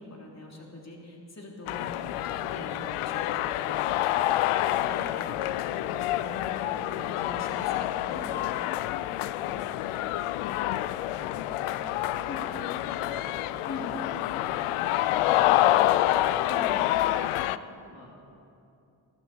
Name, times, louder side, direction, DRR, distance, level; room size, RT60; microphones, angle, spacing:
voice 1, 0.0-4.0 4.7-8.6 11.4-11.5 11.8-11.9 12.3-12.5 13.6-13.9 16.4-16.9, left 2 dB, 30° left, -1 dB, 3.5 m, -42 dB
sound 1, 1.7-17.6, left 14 dB, 85° left, 0.6 m, -27 dB
voice 2, 8.7-11.5 11.8-16.1 17.3-18.2, left 1 dB, 65° left, -2 dB, 2.9 m, -49 dB
23.0 x 12.5 x 4.5 m, 2.7 s
supercardioid pair, 50°, 50 cm